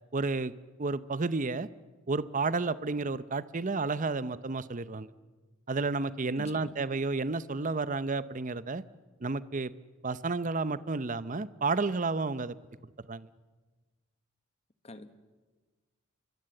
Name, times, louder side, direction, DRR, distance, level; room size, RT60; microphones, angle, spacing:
voice 1, 0.1-0.5 0.8-1.7 2.1-5.1 5.7-8.8 9.2-9.7 10.0-12.6 13.1-13.3, right 3 dB, 40° right, 16 dB, 0.7 m, -31 dB
voice 2, 6.4-6.7 14.8-15.1, left 1 dB, 30° left, 11 dB, 1.3 m, -45 dB
26.5 x 22.5 x 7.8 m, 1.3 s
head